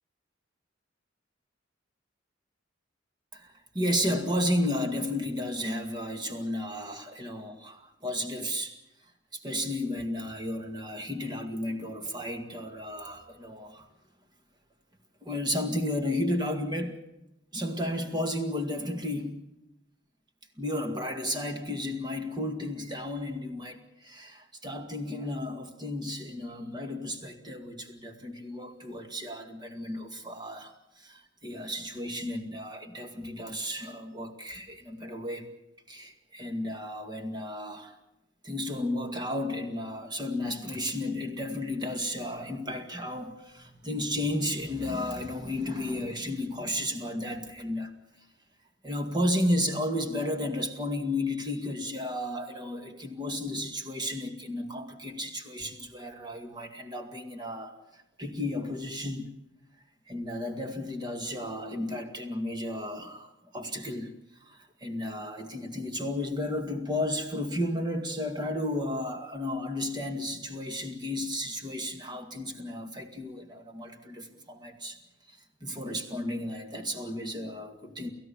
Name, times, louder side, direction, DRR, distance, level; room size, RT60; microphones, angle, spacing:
voice 1, 3.3-8.8 9.3-13.9 15.2-17.0 17.5-19.4 20.6-35.5 35.9-37.9 38.4-47.9 48.8-59.3 60.1-64.1 64.4-75.0 75.3-78.1, left 1 dB, 25° right, 2.2 m, -33 dB
30.0 x 15.5 x 7.2 m
head